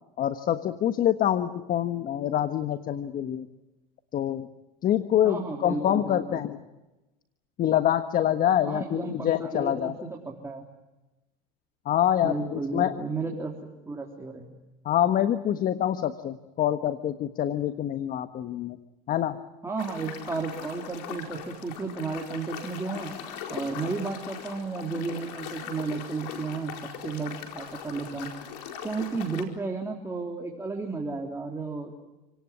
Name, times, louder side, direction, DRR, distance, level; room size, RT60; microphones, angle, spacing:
voice 1, 0.2-3.5 4.1-4.5 4.8-6.6 7.6-9.9 11.8-12.9 14.8-18.8 19.1-19.4, left 11 dB, 45° left, 10 dB, 1.4 m, -26 dB
voice 2, 5.2-6.4 8.7-10.6 12.2-14.5 19.6-23.1 23.5-26.7 27.0-28.3 28.8-32.0, right 4 dB, 15° right, 0 dB, 3.6 m, -33 dB
sound 1, 19.8-29.4, left 8 dB, 80° left, 4.6 m, -40 dB
29.0 x 18.0 x 9.9 m, 1.0 s
supercardioid pair, 105°, 21 cm